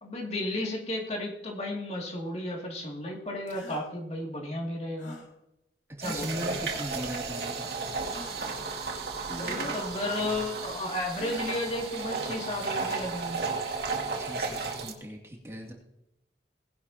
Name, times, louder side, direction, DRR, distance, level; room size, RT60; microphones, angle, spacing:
voice 1, 0.0-5.2 6.0-6.5 9.3-13.4, left 1 dB, 35° left, 0 dB, 2.4 m, -33 dB
sound 1, 3.5-3.8 5.0-5.3 6.5-6.9 8.0-8.6 9.4-9.9 11.1-11.8, left 2 dB, 85° left, 3.3 m, -45 dB
voice 2, 6.0-7.7 14.2-15.7, right 1 dB, 15° right, -1 dB, 2.4 m, -38 dB
sound 2, 6.0-14.9, right 4 dB, 65° right, 2.6 m, -34 dB
19.0 x 11.5 x 2.8 m, 0.87 s
head